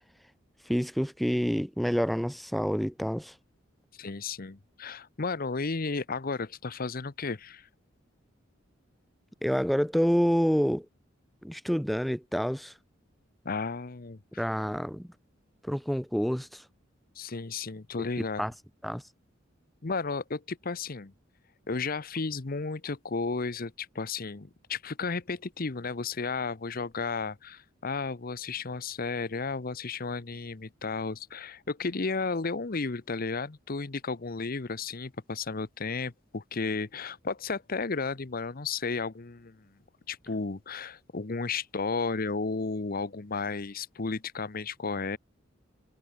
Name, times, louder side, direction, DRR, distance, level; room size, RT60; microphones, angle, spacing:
voice 1, 0.7-3.3 9.4-10.9 11.4-12.7 14.4-15.1 15.6-16.6 18.4-18.5 18.8-19.0, equal, ahead, 0.4 m, -28 dB
voice 2, 3.9-7.7 13.4-14.4 17.2-18.5 19.8-21.1 21.7-39.7 40.1-45.2, left 4 dB, 50° left, 0.9 m, -33 dB
head